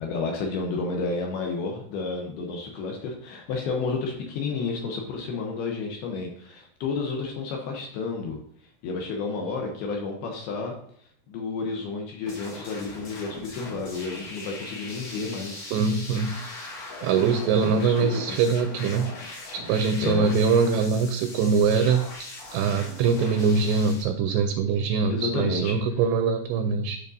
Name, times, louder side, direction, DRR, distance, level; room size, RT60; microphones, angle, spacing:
voice 1, 0.0-8.4 8.8-10.8 11.3-15.7 17.6-18.4 20.0-20.3 25.1-25.8, left 4 dB, 75° left, 1 dB, 2.5 m, -31 dB
sound 1, 12.3-24.0, left 2 dB, 55° left, 1.9 m, -40 dB
voice 2, 15.7-16.4 17.0-19.1 19.5-27.0, right 5 dB, 85° right, 7 dB, 2.5 m, -23 dB
11.0 x 5.0 x 2.6 m, 0.62 s
omnidirectional pair, 5.2 m